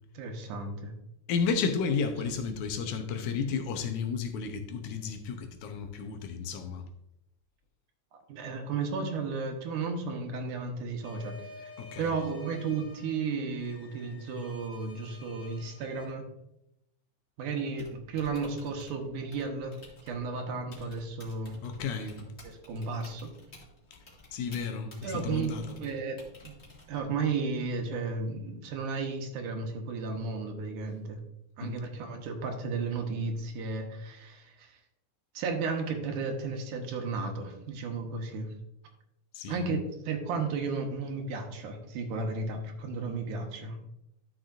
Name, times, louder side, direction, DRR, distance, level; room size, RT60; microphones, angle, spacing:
voice 1, 0.1-0.9 8.1-11.7 12.0-16.3 17.4-21.6 22.2-23.3 25.0-26.5 26.9-31.2 31.6-34.8 35.3-38.5 39.5-43.8, right 4 dB, 85° right, 4 dB, 2.6 m, -34 dB
voice 2, 1.3-6.8 11.8-12.1 21.6-22.2 24.3-25.8 31.6-31.8 39.3-39.7, left 5 dB, 80° left, 6 dB, 2.3 m, -32 dB
sound 1, 11.0-16.0, left 3 dB, 10° left, 1.7 m, -51 dB
Typing, 17.7-27.2, left 2 dB, 30° left, 1.4 m, -54 dB
12.0 x 6.3 x 2.6 m, 0.82 s
omnidirectional pair, 3.6 m